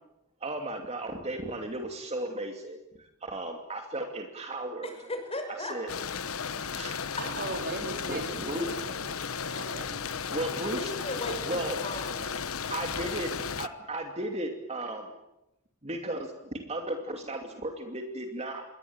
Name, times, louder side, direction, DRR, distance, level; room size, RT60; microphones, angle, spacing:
voice 1, 0.4-4.9 5.5-5.9 6.7-7.0 8.1-8.8 10.3-10.9 11.5-11.7 12.7-15.1 15.8-18.7, right 1 dB, 30° right, 4 dB, 2.7 m, -35 dB
voice 2, 4.8-5.7 10.8-12.3, left 2 dB, 30° left, 6 dB, 6.5 m, -37 dB
Rain without thunder, 5.9-13.7, left 6 dB, 90° left, 1.1 m, -35 dB
voice 3, 7.1-9.1 9.5-10.0, right 3 dB, 55° right, 4 dB, 4.2 m, -39 dB
28.0 x 22.0 x 8.9 m, 0.89 s
head